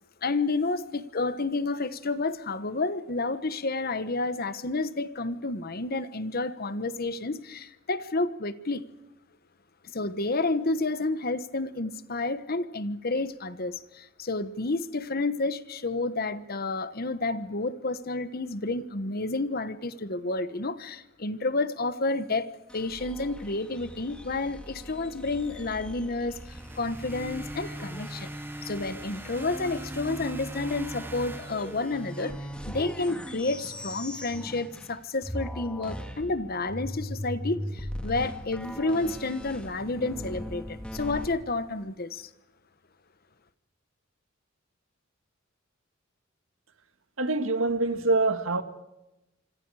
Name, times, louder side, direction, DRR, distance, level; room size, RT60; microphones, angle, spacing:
voice 1, 0.2-8.8 9.8-22.5 22.7-28.3 28.6-32.3 32.7-42.3, left 3 dB, 50° left, 1.2 m, -30 dB
sound 1, 22.7-35.0 35.2-41.3, equal, 5° left, 2.1 m, -40 dB
sound 2, 26.3-32.5, right 1 dB, 10° right, 0.8 m, -40 dB
voice 2, 47.2-48.6, right 3 dB, 90° right, 1.9 m, -25 dB
26.5 x 25.5 x 4.9 m
head